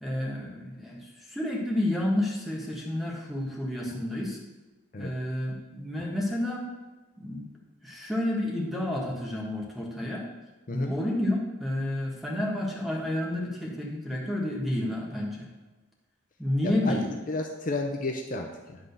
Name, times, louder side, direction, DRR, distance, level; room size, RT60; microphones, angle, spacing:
voice 1, 0.0-4.4 5.0-6.6 7.2-7.4 7.8-10.2 10.7-15.5 16.4-17.0, left 1 dB, ahead, -2 dB, 1.4 m, -30 dB
voice 2, 16.6-17.0 17.3-18.8, left 2 dB, 40° left, 2 dB, 0.6 m, -32 dB
10.5 x 3.8 x 6.7 m, 1.2 s
head